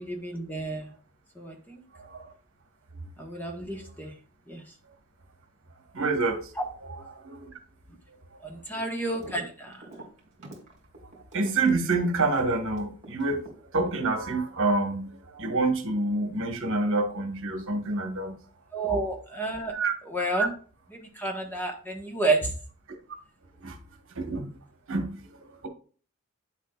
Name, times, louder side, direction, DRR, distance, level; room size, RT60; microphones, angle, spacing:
voice 1, 0.1-0.9 1.3-1.8 3.2-4.1 4.5-4.6 8.4-9.8 18.7-19.7 20.1-20.5 20.9-22.5, right 2 dB, 10° left, 2 dB, 1.3 m, -30 dB
voice 2, 1.9-2.3 2.9-3.1 5.9-6.5 6.9-7.5 8.7-8.8 11.3-18.4 19.7-19.9 23.6-23.8 24.1-24.5 24.9-25.7, right 3 dB, 60° right, 5 dB, 1.3 m, -28 dB
sound 1, 9.1-9.4 9.7-13.5 13.9-14.7, right 2 dB, 35° right, 2.8 m, -46 dB
9.2 x 7.4 x 2.4 m, 0.41 s
head